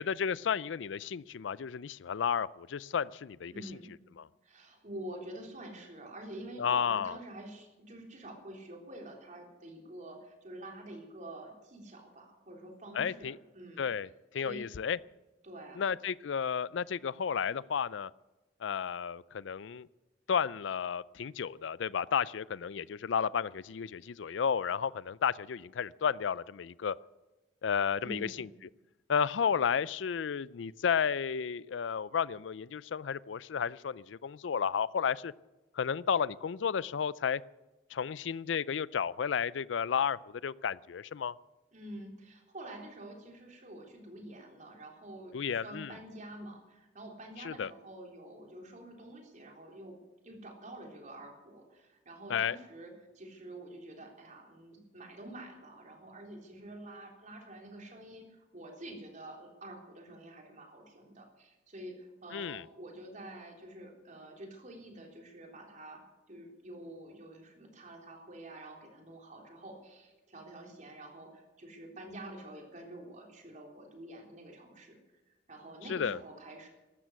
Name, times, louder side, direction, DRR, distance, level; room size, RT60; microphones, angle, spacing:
voice 1, 0.0-3.5 4.2-4.3 6.6-7.2 12.9-13.4 13.8-15.0 15.8-18.1 18.6-19.9 20.3-27.0 27.6-28.5 29.1-35.3 35.7-37.4 37.9-41.3 45.3-45.9 47.4-47.7 52.3-52.6 62.3-62.6 75.9-76.2, left 7 dB, 90° left, 21 dB, 0.4 m, -32 dB
voice 2, 3.5-3.9 4.4-13.9 14.4-14.6 15.4-15.8 28.0-28.5 41.7-50.0 50.2-66.0 66.3-75.0 75.3-76.7, right 1 dB, 45° right, 2 dB, 3.7 m, -47 dB
14.0 x 12.5 x 8.1 m, 1.1 s
head